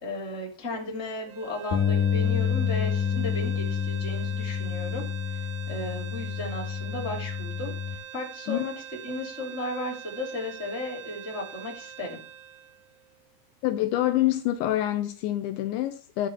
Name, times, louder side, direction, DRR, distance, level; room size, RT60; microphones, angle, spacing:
voice 1, 0.0-5.0 5.3-7.7 8.1-8.7 9.0-12.2, left 1 dB, 20° left, 2.5 m, -35 dB
sound 1, 1.3-13.5, right 9 dB, 80° right, 3.3 m, -44 dB
Bass guitar, 1.7-8.0, left 7 dB, 65° left, 2.0 m, -28 dB
voice 2, 13.6-16.3, left 14 dB, 80° left, 2.9 m, -26 dB
14.5 x 5.2 x 7.2 m
omnidirectional pair, 5.6 m